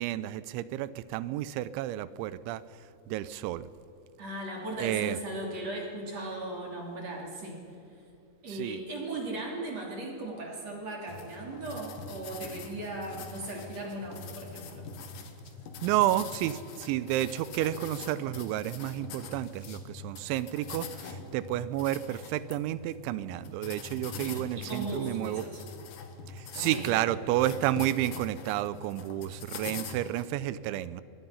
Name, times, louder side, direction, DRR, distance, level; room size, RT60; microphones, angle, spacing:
voice 1, 0.0-2.6 3.1-3.7 4.8-5.2 8.5-8.8 15.8-25.4 26.3-31.0, right 14 dB, 90° right, 16 dB, 3.1 m, -31 dB
voice 2, 4.2-7.6 8.4-14.9 24.2-25.6 26.6-26.9, right 2 dB, 40° right, 0 dB, 3.4 m, -37 dB
sound 1, 11.1-30.2, left 5 dB, 60° left, 2.6 m, -44 dB
24.0 x 20.5 x 5.7 m, 2.8 s
omnidirectional pair, 5.3 m